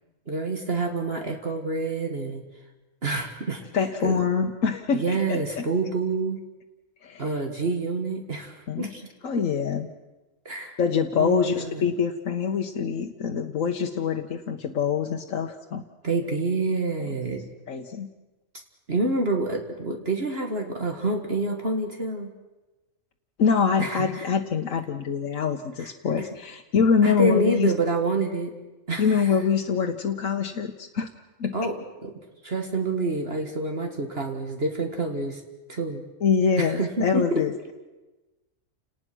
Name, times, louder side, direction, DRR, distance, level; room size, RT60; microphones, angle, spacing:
voice 1, 0.3-2.4 3.0-3.6 4.0-4.2 4.9-6.4 7.2-9.0 9.4-9.5 10.5-10.8 11.2-11.9 16.0-17.5 18.9-22.3 23.8-24.3 25.8-25.9 27.0-28.5 28.9-29.4 31.5-35.4 35.7-36.0 36.6-37.4, right 2 dB, 50° right, 3 dB, 2.1 m, -27 dB
voice 2, 3.7-5.7 7.0-7.3 8.7-8.9 9.2-9.9 10.8-15.8 17.1-17.4 17.7-18.1 23.4-27.7 29.0-31.1 31.4-31.5 36.2-37.7, left 6 dB, 80° left, 2 dB, 1.4 m, -25 dB
29.5 x 19.0 x 6.1 m, 1.1 s
omnidirectional pair, 1.4 m